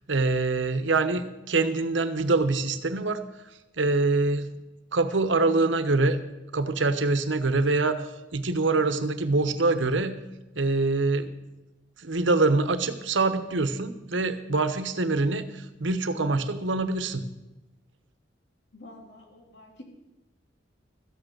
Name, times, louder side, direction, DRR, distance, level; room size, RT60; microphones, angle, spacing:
voice 1, 0.1-3.2 3.8-4.5 4.9-6.2 6.5-10.2 10.5-11.3 12.0-17.3, right 3 dB, 80° right, 11 dB, 1.0 m, -25 dB
voice 2, 18.7-19.8, left 1 dB, 65° left, 0 dB, 3.2 m, -48 dB
14.0 x 8.9 x 6.7 m, 1.0 s
head